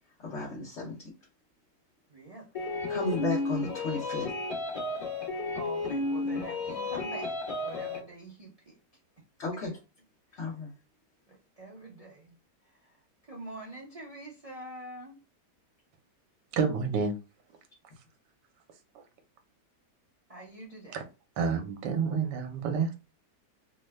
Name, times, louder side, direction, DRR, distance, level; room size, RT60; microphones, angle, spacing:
voice 1, 0.2-1.0 2.9-4.3 9.4-9.7 10.4-10.7, left 3 dB, 50° left, -4 dB, 1.1 m, -34 dB
voice 2, 2.1-2.5 2.8-2.9 5.5-8.8 10.3-10.5 11.3-12.3 12.6-13.0 13.3-15.2 20.3-21.0, right 1 dB, 45° right, -3 dB, 0.5 m, -45 dB
sound 1, 2.5-8.0, left 2 dB, 25° left, 1.0 m, -33 dB
voice 3, 16.5-17.1 20.9-21.0 21.4-22.9, right 5 dB, 85° right, 6 dB, 1.3 m, -29 dB
3.1 x 2.1 x 3.2 m, 0.29 s
omnidirectional pair, 1.8 m